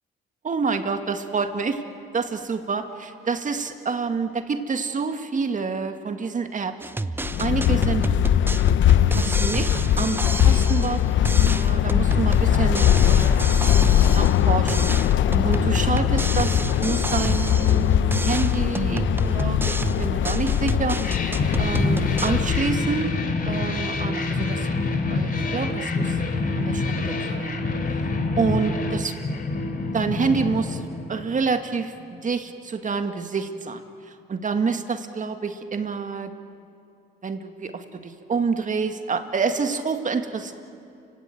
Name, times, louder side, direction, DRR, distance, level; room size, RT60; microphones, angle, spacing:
voice 1, 0.4-1.8 2.1-6.7 7.4-8.1 9.1-9.7 10.0-14.9 15.4-21.0 21.6-23.1 23.5-24.7 25.1-26.2 26.6-27.6 28.4-29.1 29.9-30.8 31.1-36.3 37.2-40.5, right 5 dB, 40° right, 7 dB, 2.1 m, -28 dB
sound 1, 6.8-11.0 11.3-14.4 14.7-17.9 18.1-22.3, right 2 dB, 10° right, 0.7 m, -29 dB
sound 2, 7.2-23.0, left 10 dB, 70° left, 0.8 m, -21 dB
sound 3, 21.0-31.6, left 3 dB, 45° left, 3.0 m, -26 dB
30.0 x 17.0 x 9.4 m, 2.6 s
cardioid pair, 90°, 20 cm